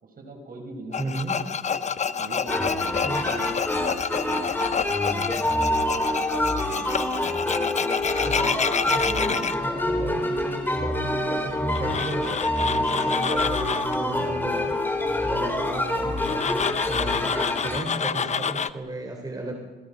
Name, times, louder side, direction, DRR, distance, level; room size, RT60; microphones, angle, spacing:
voice 1, 0.0-1.7 2.2-3.5 4.2-7.1, right 2 dB, 45° right, 4 dB, 5.4 m, -42 dB
Tools, 0.9-9.5 11.7-14.0 16.2-18.7, left 6 dB, 35° left, 0.9 m, -28 dB
voice 2, 1.0-1.4 3.0-3.5 8.2-19.5, right 1 dB, 20° right, 2 dB, 3.7 m, -34 dB
sound 1, 2.5-17.8, left 1 dB, 10° left, 3.5 m, -26 dB
27.5 x 20.5 x 5.2 m, 1.4 s
cardioid pair, 90°, 20 cm